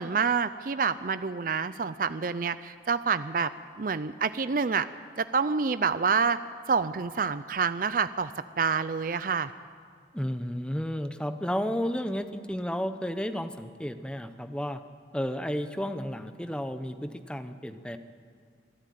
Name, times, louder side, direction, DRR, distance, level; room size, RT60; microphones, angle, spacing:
voice 1, 0.0-3.5 3.8-4.9 5.2-6.4 6.7-8.3 8.6-9.5, right 5 dB, 50° right, 13 dB, 0.5 m, -27 dB
voice 2, 10.1-14.8 15.1-18.0, equal, 5° left, 9 dB, 0.8 m, -32 dB
24.5 x 13.5 x 9.3 m, 2.1 s
head